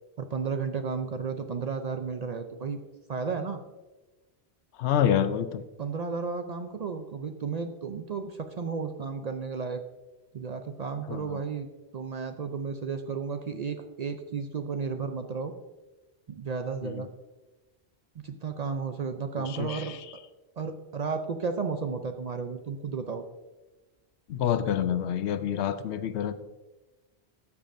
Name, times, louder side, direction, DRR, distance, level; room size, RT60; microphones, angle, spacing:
voice 1, 0.2-2.8 3.1-3.6 5.1-5.2 5.8-9.8 10.3-11.7 11.9-15.5 16.3-17.1 18.2-20.0 20.6-23.2, right 5 dB, 50° right, 7 dB, 0.5 m, -33 dB
voice 2, 4.8-5.6 11.1-11.4 16.8-17.0 19.6-19.8 24.3-26.3, left 9 dB, 90° left, 12 dB, 0.9 m, -27 dB
13.5 x 7.1 x 2.6 m, 1.1 s
omnidirectional pair, 1.1 m